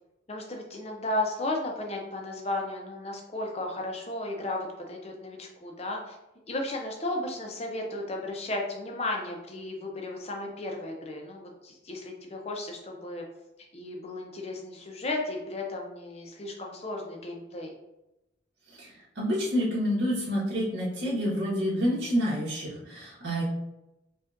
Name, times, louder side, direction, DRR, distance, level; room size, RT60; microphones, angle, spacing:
voice 1, 0.3-6.2 6.5-13.2 13.7-17.7, left 2 dB, 35° left, 1 dB, 0.6 m, -34 dB
voice 2, 19.2-23.4, equal, 75° right, -7 dB, 1.5 m, -28 dB
4.9 x 2.4 x 2.6 m, 0.92 s
head